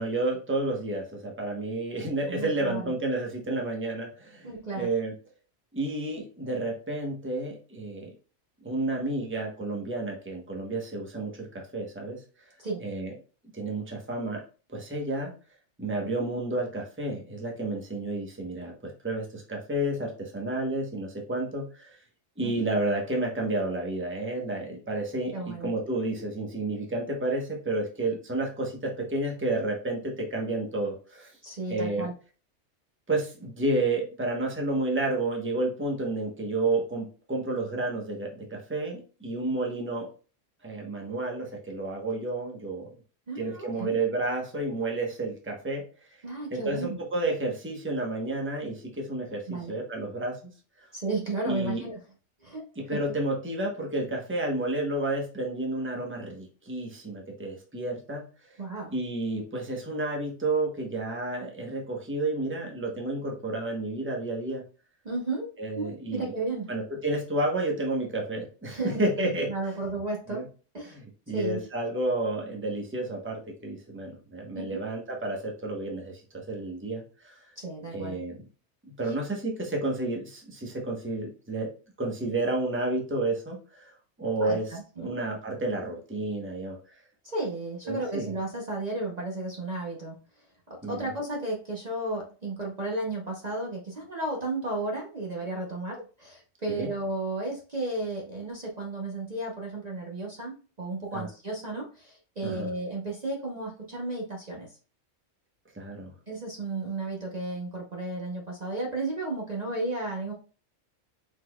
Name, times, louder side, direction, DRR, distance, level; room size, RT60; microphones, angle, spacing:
voice 1, 0.0-5.1 5.7-8.1 8.6-12.2 12.8-13.1 13.5-14.4 14.7-15.3 15.8-22.0 22.4-31.3 31.7-32.0 33.1-40.1 40.6-42.9 43.4-45.8 46.5-50.4 51.5-51.8 52.8-58.3 58.9-64.6 65.6-66.3 66.7-69.5 70.3-70.4 70.9-76.2 76.5-77.4 77.9-78.4 78.9-81.7 82.0-83.9 84.2-84.6 85.0-86.8 87.9-88.3 90.8-91.0 96.7-96.9 101.1-101.3 102.4-102.7 105.7-106.1, right 2 dB, 10° right, 0 dB, 0.9 m, -31 dB
voice 2, 2.3-2.9 4.4-4.9 12.6-12.9 16.0-16.1 22.4-22.7 25.3-25.7 31.4-32.1 43.3-44.0 46.2-47.0 49.5-49.8 50.9-52.0 52.4-53.1 58.6-58.9 65.0-65.5 65.8-66.7 68.7-70.5 70.7-71.0 71.3-71.6 74.5-74.9 77.6-78.2 79.0-79.1 84.4-85.2 87.2-104.8 106.3-110.3, right 2 dB, 40° right, -2 dB, 0.9 m, -33 dB
5.0 x 4.1 x 2.3 m, 0.36 s
omnidirectional pair, 1.2 m